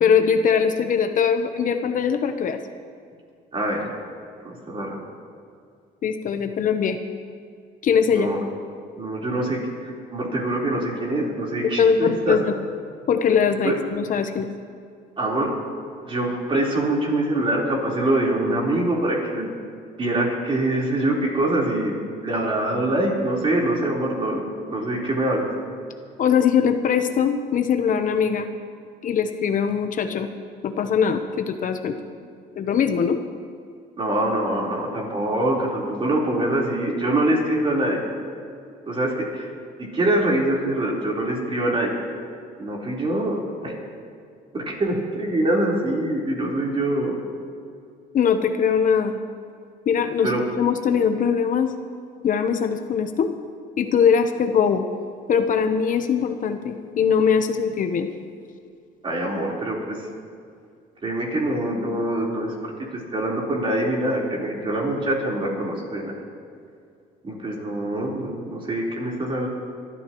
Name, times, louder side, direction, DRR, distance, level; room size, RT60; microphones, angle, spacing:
voice 1, 0.0-2.6 6.0-7.0 7.8-8.3 11.8-12.6 13.1-14.5 26.2-28.5 29.0-30.3 30.6-32.0 32.6-33.2 48.1-49.2 49.9-50.3 50.6-51.7 52.2-53.3 53.8-54.8 55.3-58.1, left 7 dB, 50° left, 7 dB, 0.9 m, -21 dB
voice 2, 3.5-3.9 4.4-5.0 8.2-8.4 9.0-12.4 13.6-13.8 15.2-15.5 16.0-19.5 20.0-22.0 22.2-24.4 24.7-25.5 34.0-38.0 38.9-39.5 39.9-41.9 42.6-43.8 44.5-47.1 50.2-50.4 59.0-60.0 61.0-66.1 67.2-69.5, right 1 dB, 30° right, -3 dB, 4.1 m, -24 dB
25.5 x 13.0 x 3.1 m, 2.3 s
cardioid pair, 110°, 17 cm